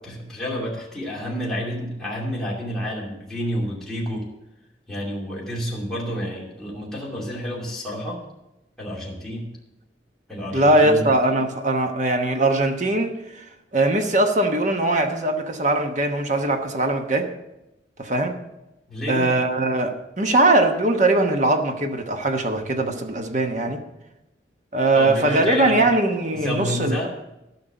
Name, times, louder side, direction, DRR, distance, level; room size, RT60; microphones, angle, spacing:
voice 1, 0.0-4.2 4.9-8.2 8.8-9.5 10.3-11.1 18.9-19.4 24.9-25.8 26.3-27.1, equal, 5° left, -6 dB, 2.6 m, -29 dB
voice 2, 10.5-13.1 13.7-17.3 18.0-18.3 19.1-23.8 24.7-27.0, right 2 dB, 45° right, 5 dB, 1.1 m, -20 dB
13.0 x 5.9 x 6.8 m, 0.93 s
head